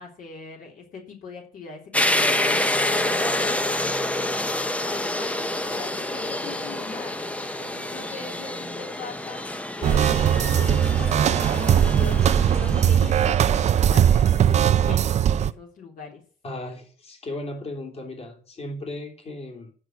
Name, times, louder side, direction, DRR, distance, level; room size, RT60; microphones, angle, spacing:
voice 1, 0.0-9.5 9.8-16.2, left 4 dB, 55° left, 0 dB, 3.2 m, -40 dB
sound 1, 1.9-14.6, left 1 dB, 10° left, 0.8 m, -28 dB
sound 2, 9.8-15.5, right 9 dB, 40° right, 0.5 m, -20 dB
voice 2, 16.4-19.7, left 1 dB, 35° left, 2 dB, 3.5 m, -36 dB
9.9 x 6.1 x 8.1 m, 0.42 s
cardioid pair, 110°, 17 cm